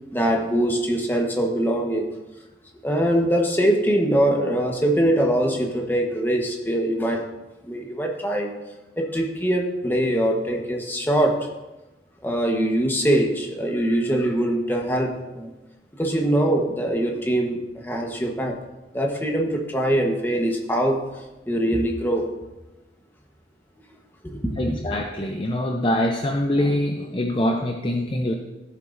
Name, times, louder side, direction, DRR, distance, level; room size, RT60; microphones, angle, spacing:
voice 1, 0.1-2.1 2.8-7.2 7.6-8.5 9.0-11.5 12.2-15.5 16.0-18.6 18.9-21.0 21.5-22.3 24.2-24.8, right 1 dB, 10° left, 1 dB, 1.1 m, -23 dB
voice 2, 24.6-28.3, left 1 dB, 30° left, 2 dB, 0.6 m, -24 dB
13.5 x 7.9 x 2.6 m, 1.1 s
head